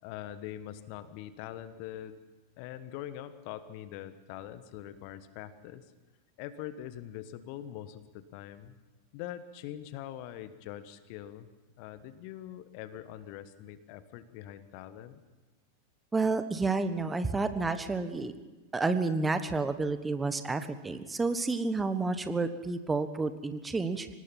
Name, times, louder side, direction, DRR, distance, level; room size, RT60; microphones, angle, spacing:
voice 1, 0.0-2.2 2.6-5.9 6.4-8.8 9.1-11.5 11.8-15.2, left 11 dB, 45° left, 13 dB, 1.3 m, -43 dB
voice 2, 16.1-18.3 18.7-24.1, right 3 dB, 10° right, 11 dB, 1.3 m, -30 dB
25.0 x 19.0 x 5.8 m, 1.2 s
figure-of-eight pair, 90°, 0 cm